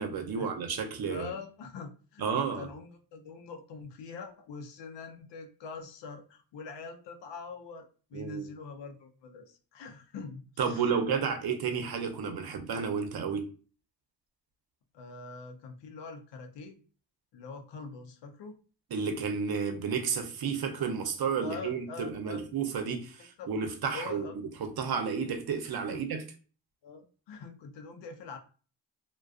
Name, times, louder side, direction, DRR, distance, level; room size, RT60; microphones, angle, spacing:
voice 1, 0.0-1.3 2.2-2.7 8.1-8.5 10.6-13.4 18.9-24.3 24.6-26.2, right 6 dB, 60° right, 0.7 m, -31 dB
voice 2, 1.1-11.4 14.9-16.8 17.3-18.6 21.4-22.4 23.4-23.5 23.9-24.3 25.9-26.0 26.8-28.4, left 4 dB, 75° left, 0.6 m, -44 dB
2.3 x 2.3 x 2.3 m
supercardioid pair, 45°, 43 cm